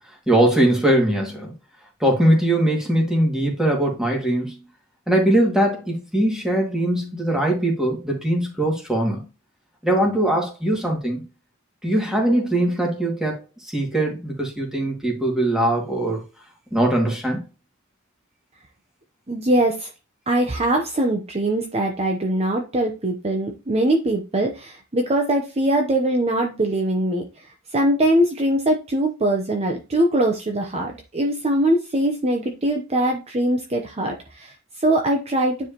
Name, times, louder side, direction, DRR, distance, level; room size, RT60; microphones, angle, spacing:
voice 1, 0.3-1.5 2.0-4.6 5.1-9.3 9.8-11.3 11.8-13.4 13.7-16.2 16.7-17.4, right 1 dB, 5° right, 2.2 m, -21 dB
voice 2, 19.3-19.9 20.3-27.2 27.7-35.7, right 1 dB, 30° right, 0.8 m, -22 dB
9.6 x 4.8 x 3.0 m
head